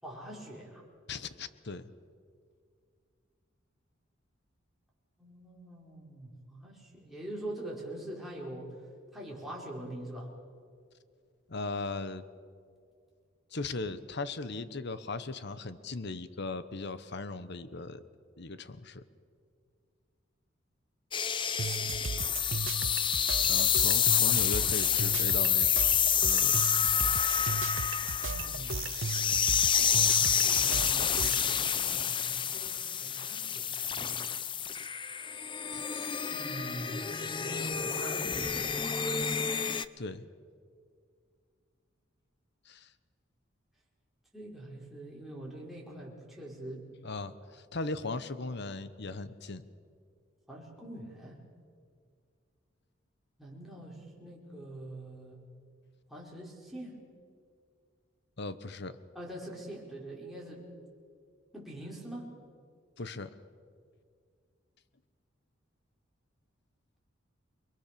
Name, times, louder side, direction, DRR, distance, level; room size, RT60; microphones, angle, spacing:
voice 1, 0.0-0.8 5.2-8.8 9.1-10.3 23.4-23.7 28.2-28.9 29.9-34.3 36.3-38.7 44.3-46.8 50.5-51.4 53.4-55.4 56.1-57.0 59.1-60.6 61.5-62.3, right 1 dB, ahead, -4 dB, 5.1 m, -44 dB
voice 2, 1.1-1.9 11.5-12.2 13.5-18.0 18.4-19.0 23.5-25.7 26.2-26.7 35.7-36.1 40.0-40.3 42.6-42.9 47.0-49.6 58.4-59.0 63.0-63.3, left 3 dB, 60° left, 13 dB, 1.0 m, -38 dB
sound 1, 21.1-39.9, left 8 dB, 25° left, 0.6 m, -28 dB
sound 2, 21.6-31.5, right 5 dB, 80° right, 0.7 m, -37 dB
28.5 x 22.0 x 6.9 m, 2.2 s
head